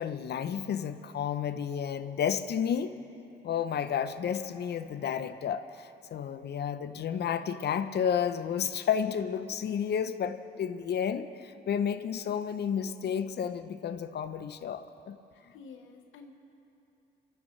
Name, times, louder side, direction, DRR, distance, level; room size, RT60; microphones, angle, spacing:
voice 1, 0.0-3.0 3.4-15.2, left 8 dB, 55° left, 11 dB, 0.7 m, -31 dB
voice 2, 15.3-16.3, left 4 dB, 85° left, 4 dB, 1.2 m, -50 dB
28.0 x 13.5 x 3.2 m, 2.8 s
cardioid pair, 90°, 20 cm